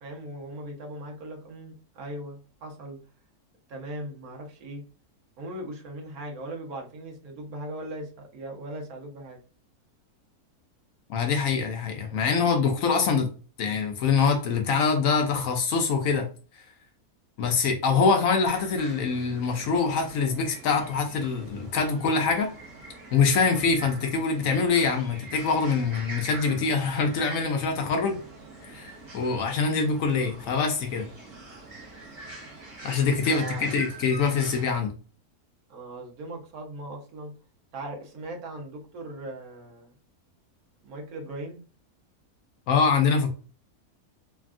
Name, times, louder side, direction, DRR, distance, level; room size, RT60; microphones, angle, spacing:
voice 1, 0.0-3.0 3.7-4.8 5.4-9.4 33.3-33.7 35.7-37.3 37.7-39.9 40.8-41.6, right 1 dB, 75° right, 1 dB, 1.3 m, -39 dB
voice 2, 11.1-13.3 13.6-16.3 17.4-22.5 23.1-28.2 28.6-31.1 32.8-34.9 42.7-43.3, left 5 dB, 70° left, 4 dB, 0.9 m, -24 dB
sound 1, 18.5-34.8, right 2 dB, 50° right, 1.0 m, -44 dB
3.3 x 2.3 x 2.4 m, 0.37 s
omnidirectional pair, 1.6 m